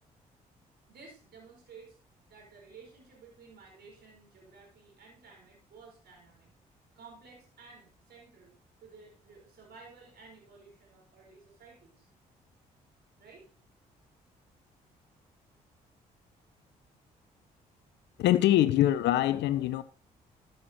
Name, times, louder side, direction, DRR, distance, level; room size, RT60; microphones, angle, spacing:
voice 1, 0.9-2.0 2.3-6.5 7.0-8.5 8.8-12.1 13.2-13.5, right 4 dB, 60° right, 4.9 m, -54 dB
voice 2, 18.2-19.8, left 13 dB, 70° left, 0.6 m, -24 dB
13.0 x 8.0 x 3.0 m
hypercardioid pair, 45°, 19 cm